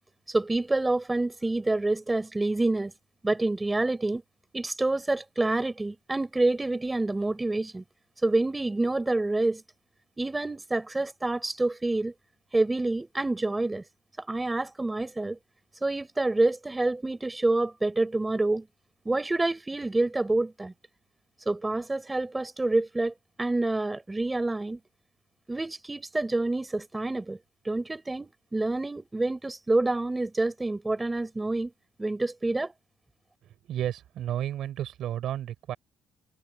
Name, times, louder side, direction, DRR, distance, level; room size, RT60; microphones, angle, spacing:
voice 1, 0.3-2.9 3.2-4.2 4.5-7.8 8.2-9.6 10.2-12.1 12.5-13.8 14.2-15.4 15.8-18.6 19.1-20.7 21.5-24.8 25.5-27.4 27.7-31.7 32.0-32.7, right 2 dB, 10° right, 5.2 m, -27 dB
voice 2, 33.7-35.8, right 11 dB, 55° right, 7.1 m, -32 dB
cardioid pair, 165°, 0 cm